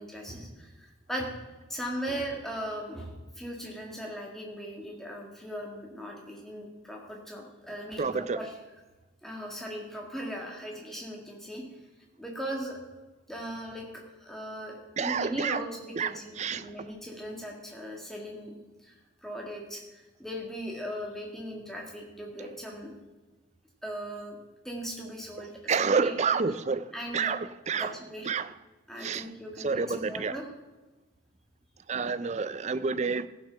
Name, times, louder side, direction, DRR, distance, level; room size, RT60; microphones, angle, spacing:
voice 1, 0.0-1.3 1.7-8.5 9.2-11.6 12.2-12.8 13.3-13.9 14.2-18.5 18.8-18.9 19.2-22.9 23.8-24.4 24.6-26.4 26.9-27.4 27.7-28.3 28.9-30.4, equal, ahead, 1.9 m, -38 dB
voice 2, 8.0-8.4 15.0-15.6 16.0-16.7 25.7-26.9 27.1-27.9 28.3-28.5 29.0-29.3 29.6-30.4 31.9-33.3, right 5 dB, 35° right, 0.4 m, -29 dB
15.0 x 5.9 x 5.7 m
head